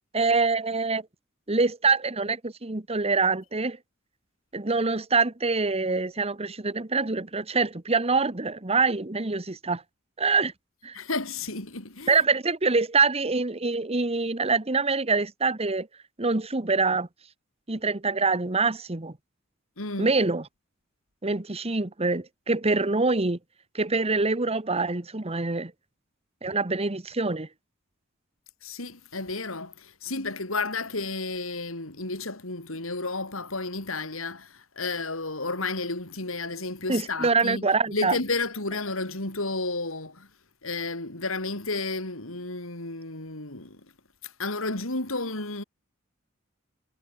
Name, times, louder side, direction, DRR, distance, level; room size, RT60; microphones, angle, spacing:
voice 1, 0.1-1.1 1.5-3.8 4.5-9.8 10.2-10.5 10.8-10.9 12.1-15.9 16.2-17.1 17.7-19.1 20.0-20.5 21.2-23.4 23.7-25.7 26.4-27.5 36.9-38.2, right 4 dB, 30° right, 1.3 m, -25 dB
voice 2, 10.9-12.2 19.8-20.1 28.6-37.7 37.9-40.3 40.6-43.8 44.4-45.6, left 3 dB, 90° left, 5.5 m, -32 dB
head